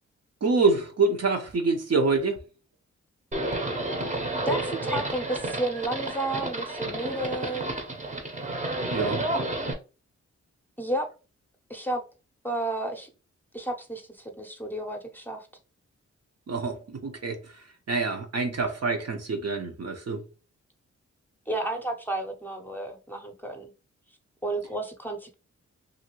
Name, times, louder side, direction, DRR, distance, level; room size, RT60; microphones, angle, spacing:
voice 1, 0.4-2.4 8.9-9.2 16.5-20.2, right 3 dB, 60° right, 0.7 m, -26 dB
Livestock farm animals working animals, 3.3-9.7, right 2 dB, 25° right, 0.8 m, -31 dB
voice 2, 4.5-7.7 10.8-11.1 11.7-12.0 12.4-13.1 13.5-15.5 21.5-23.7 24.4-25.3, right 1 dB, 5° left, 0.7 m, -32 dB
2.7 x 2.7 x 2.9 m
cardioid pair, 60°, 29 cm